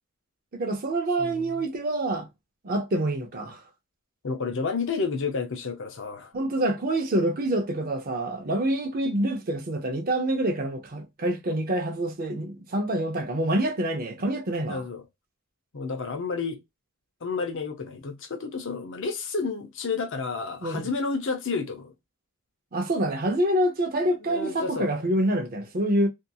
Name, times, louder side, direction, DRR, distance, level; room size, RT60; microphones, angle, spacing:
voice 1, 0.5-2.3 2.6-3.6 6.3-14.8 20.6-20.9 22.7-26.1, right 1 dB, 40° right, 0.6 m, -26 dB
voice 2, 1.2-1.6 4.2-6.3 14.7-15.0 15.7-16.6 17.2-21.9 24.2-25.1, left 4 dB, 60° left, 0.6 m, -31 dB
2.7 x 2.6 x 2.3 m
head